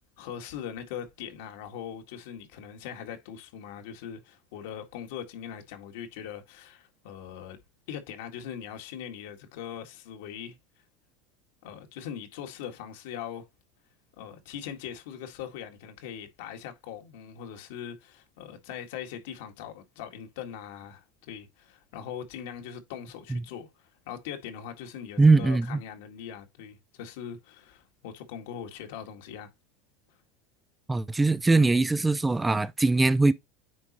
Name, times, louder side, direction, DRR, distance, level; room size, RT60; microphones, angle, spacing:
voice 1, 0.2-7.6 7.9-10.6 11.6-13.5 14.2-29.5, left 9 dB, 75° left, 1.8 m, -41 dB
voice 2, 25.2-25.8 30.9-33.3, right 3 dB, 10° right, 0.4 m, -21 dB
9.4 x 3.8 x 2.9 m
supercardioid pair, 105°, 0 cm